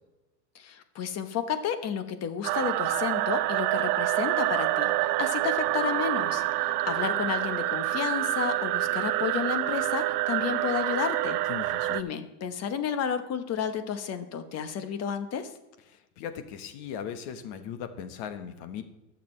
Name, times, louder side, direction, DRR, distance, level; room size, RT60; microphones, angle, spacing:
voice 1, 0.5-11.4 11.9-15.5, left 7 dB, 35° left, 10 dB, 1.1 m, -32 dB
sound 1, 2.4-12.0, right 16 dB, 75° right, 0.6 m, -27 dB
voice 2, 11.5-12.0 15.9-18.8, left 8 dB, 55° left, 9 dB, 1.4 m, -38 dB
20.0 x 6.8 x 3.2 m, 1.0 s
supercardioid pair, 125°, 47 cm